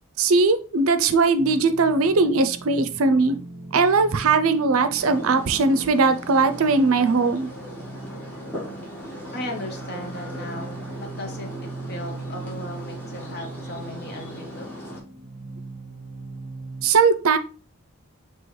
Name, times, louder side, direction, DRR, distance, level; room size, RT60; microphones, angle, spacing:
voice 1, 0.2-3.4 3.7-7.5 16.8-17.4, right 4 dB, 70° right, 11 dB, 0.5 m, -19 dB
sound 1, 1.4-16.9, right 3 dB, 20° right, 1.2 m, -39 dB
sound 2, 5.0-15.0, equal, 10° left, 1.3 m, -39 dB
voice 2, 9.3-11.5 11.9-14.7, left 1 dB, 45° left, 3 dB, 0.9 m, -36 dB
5.4 x 2.9 x 3.1 m, 0.37 s
head